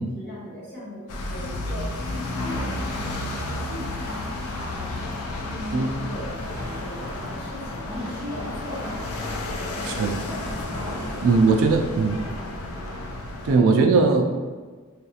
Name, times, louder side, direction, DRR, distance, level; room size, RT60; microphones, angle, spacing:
voice 1, 0.0-4.1 4.7-5.2 5.4-9.1 9.5-9.9 10.8-11.7 12.0-12.2 13.5-13.7, left 1 dB, 50° left, -9 dB, 1.4 m, -39 dB
sound 1, 1.1-13.6, left 2 dB, 80° left, 0.4 m, -32 dB
sound 2, 2.0-13.2, left 1 dB, 10° left, 0.6 m, -40 dB
voice 2, 9.8-10.2 11.2-12.2 13.4-14.3, right 4 dB, 65° right, 4 dB, 0.3 m, -19 dB
4.0 x 2.3 x 2.7 m, 1.4 s
head